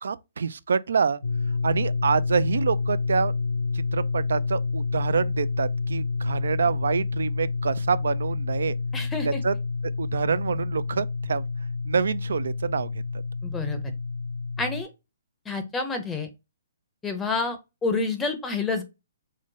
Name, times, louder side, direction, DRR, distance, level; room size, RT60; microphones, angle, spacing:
voice 1, 0.0-1.2 1.6-3.3 3.7-8.8 9.3-9.5 10.0-11.5 11.9-12.9, right 5 dB, 80° right, 0.3 m, -26 dB
sound 1, 1.2-14.8, left 4 dB, 80° left, 0.6 m, -29 dB
voice 2, 8.9-9.4 13.4-13.8 14.6-14.9 15.5-16.3 17.0-18.8, left 3 dB, 10° left, 0.6 m, -28 dB
3.7 x 2.1 x 3.8 m
hypercardioid pair, 145°, 0 cm